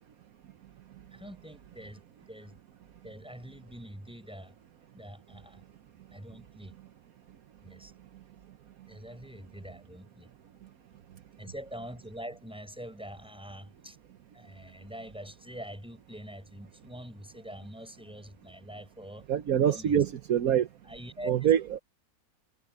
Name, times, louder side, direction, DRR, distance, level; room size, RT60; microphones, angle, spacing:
voice 1, 1.1-2.5 3.0-4.5 4.9-5.6 6.1-6.7 7.6-7.9 8.8-10.3 11.4-14.0 14.3-19.3 19.7-20.0 20.8-21.5, equal, 5° right, 5.7 m, -44 dB
voice 2, 19.3-20.7 21.3-21.8, right 9 dB, 70° right, 1.3 m, -25 dB
omnidirectional pair, 1.6 m